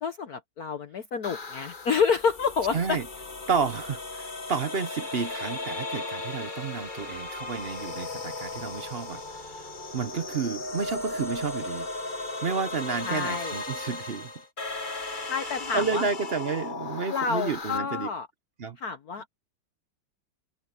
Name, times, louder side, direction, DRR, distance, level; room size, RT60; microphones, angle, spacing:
voice 1, 0.0-3.0 13.0-13.6 15.3-16.0 17.1-18.3 18.8-19.3, left 6 dB, 55° left, 1.3 m, -28 dB
sound 1, 1.2-17.8, left 2 dB, 25° left, 1.5 m, -36 dB
voice 2, 2.7-3.1 3.5-9.7 9.9-11.9 12.4-14.3 15.7-18.1 18.6-18.8, right 5 dB, 50° right, 0.7 m, -31 dB
omnidirectional pair, 2.2 m